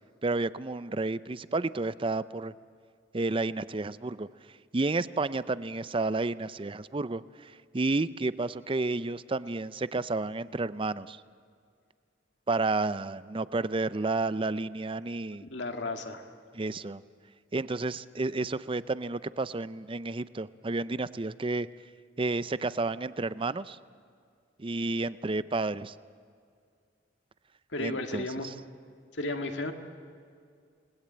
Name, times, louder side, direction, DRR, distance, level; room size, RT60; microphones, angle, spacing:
voice 1, 0.2-2.5 3.1-4.3 4.7-11.2 12.5-15.5 16.5-17.0 17.5-21.7 22.2-23.8 24.6-25.9 27.8-28.5, right 3 dB, 30° right, 16 dB, 0.6 m, -31 dB
voice 2, 15.4-16.3 27.7-28.5 29.1-29.7, left 2 dB, 70° left, 5 dB, 2.2 m, -34 dB
29.0 x 20.0 x 8.8 m, 2.2 s
head